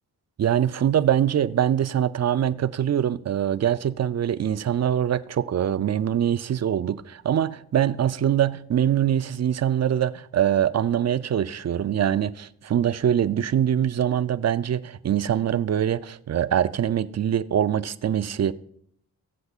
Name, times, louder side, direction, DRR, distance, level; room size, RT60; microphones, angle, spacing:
voice 1, 0.4-18.5, right 10 dB, 45° right, 0.5 m, -23 dB
15.5 x 7.9 x 2.4 m
cardioid pair, 65°, 38 cm